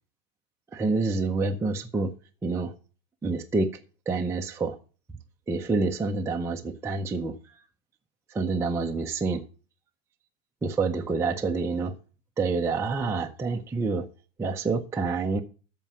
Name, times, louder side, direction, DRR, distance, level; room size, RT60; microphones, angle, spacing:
voice 1, 0.7-2.1 2.4-2.7 3.2-3.7 4.1-4.8 5.5-7.6 8.3-9.4 10.6-11.9 12.4-14.1 14.4-15.4, right 3 dB, 5° right, 0.6 m, -27 dB
13.5 x 4.6 x 6.9 m
supercardioid pair, 135°, 38 cm